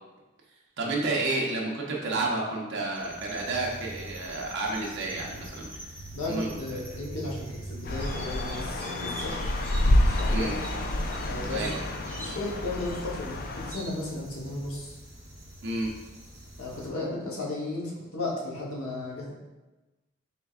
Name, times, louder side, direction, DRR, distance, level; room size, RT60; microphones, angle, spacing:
voice 1, 0.8-5.7 6.3-6.5 10.3-10.5 11.5-11.8 15.6-15.9, right 2 dB, 55° right, -3 dB, 0.7 m, -30 dB
sound 1, 2.9-16.9, right 1 dB, 10° left, 1.0 m, -43 dB
voice 2, 6.1-9.3 10.0-10.5 11.2-11.9 12.2-15.0 16.6-19.3, left 2 dB, 85° left, -4 dB, 1.0 m, -35 dB
sound 2, 7.8-13.7, left 1 dB, 45° left, 0.3 m, -28 dB
4.5 x 3.5 x 2.4 m, 1.1 s
head